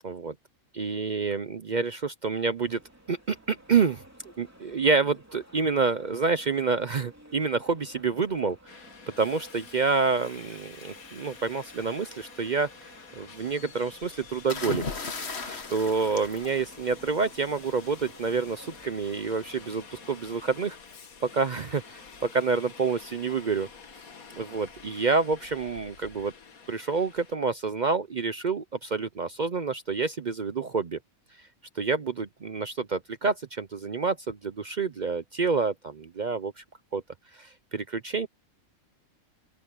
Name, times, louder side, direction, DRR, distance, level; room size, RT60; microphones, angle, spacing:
voice 1, 0.0-0.3 0.7-2.8 3.1-4.0 4.4-8.6 9.2-12.7 13.2-14.8 15.4-20.8 21.2-23.7 24.4-26.3 26.7-31.0 31.8-36.6 36.9-37.0 37.4-38.3, right 4 dB, 45° right, 0.6 m, -28 dB
sound 1, 2.6-20.7, right 1 dB, 10° right, 3.1 m, -53 dB
Subway metro underground, 8.7-27.4, left 5 dB, 90° left, 2.1 m, -49 dB
sound 2, 14.5-17.3 18.5-18.8, left 4 dB, 50° left, 1.9 m, -36 dB
open air
omnidirectional pair, 1.4 m